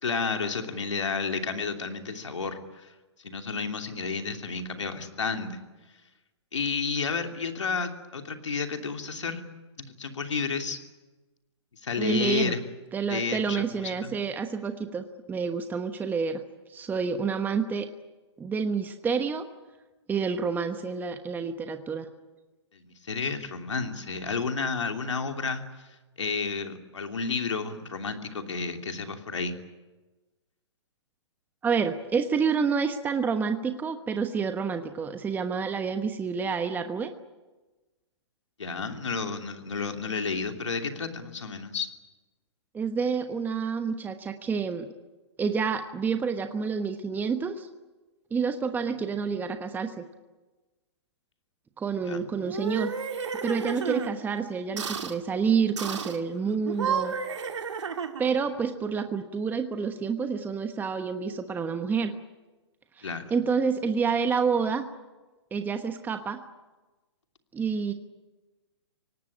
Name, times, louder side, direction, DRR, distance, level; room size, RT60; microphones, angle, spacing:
voice 1, 0.0-2.9 3.2-5.6 6.5-9.4 9.8-10.8 11.8-12.6 13.1-14.1 22.7-29.5 38.6-41.9 52.0-52.2 63.0-63.3, left 5 dB, 85° left, 5 dB, 3.0 m, -31 dB
voice 2, 12.0-12.5 12.9-16.4 16.7-17.9 18.4-19.5 20.1-22.1 31.6-37.1 42.7-44.9 45.4-47.7 48.3-50.0 51.8-52.9 53.4-57.1 58.2-62.1 63.0-64.9 65.5-66.4 67.5-67.9, right 5 dB, 10° right, 7 dB, 1.2 m, -28 dB
sound 1, 52.4-54.1 54.8-55.2 55.8-56.2 56.6-58.4, right 6 dB, 80° right, 2.3 m, -32 dB
24.5 x 18.5 x 10.0 m, 1.2 s
hypercardioid pair, 130°, 15 cm